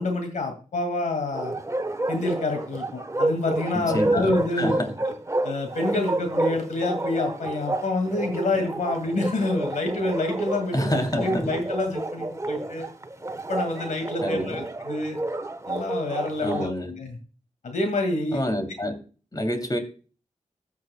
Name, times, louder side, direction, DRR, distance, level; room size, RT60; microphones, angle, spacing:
voice 1, 0.0-1.5 2.1-4.7 5.4-12.9 13.5-15.2 15.7-17.2 17.6-18.4, left 2 dB, 85° left, 5 dB, 2.1 m, -27 dB
Bark, 1.3-16.7, right 2 dB, 25° right, 1.1 m, -30 dB
voice 2, 3.7-4.3 4.6-4.9 10.7-11.5 14.2-14.6 16.4-16.9 18.3-19.0 19.3-19.8, left 1 dB, 30° left, 6 dB, 2.7 m, -27 dB
15.0 x 8.4 x 2.2 m, 0.37 s
cardioid pair, 45°, 12 cm